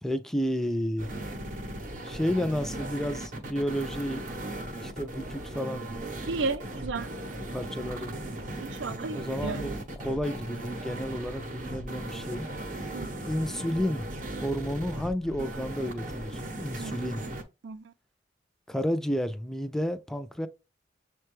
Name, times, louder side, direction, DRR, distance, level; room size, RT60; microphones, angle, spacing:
voice 1, 0.0-1.1 2.0-4.3 4.8-5.9 7.4-8.1 9.1-12.5 13.3-14.1 14.4-17.3 18.7-20.5, equal, ahead, 0.3 m, -31 dB
sound 1, 1.0-17.4, right 1 dB, 45° right, 0.7 m, -37 dB
voice 2, 6.3-7.1 8.6-9.7 12.9-13.1 16.8-17.0 17.6-17.9, right 4 dB, 75° right, 0.4 m, -33 dB
6.5 x 2.2 x 3.1 m
head